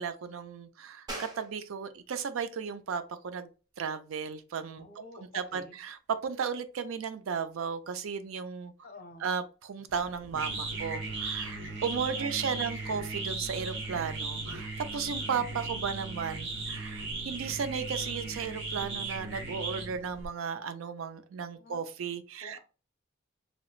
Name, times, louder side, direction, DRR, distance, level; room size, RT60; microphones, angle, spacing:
voice 1, 0.0-3.5 3.8-4.8 5.3-8.7 9.2-22.6, right 6 dB, 80° right, 0.4 m, -35 dB
sound 1, 1.1-11.3, right 1 dB, 20° right, 0.6 m, -51 dB
voice 2, 4.8-5.8 8.8-9.2 12.2-12.6 21.6-21.8 22.4-22.6, left 2 dB, 45° left, 0.6 m, -49 dB
sound 2, 9.9-20.3, right 3 dB, 55° right, 0.9 m, -37 dB
3.0 x 2.9 x 2.3 m
head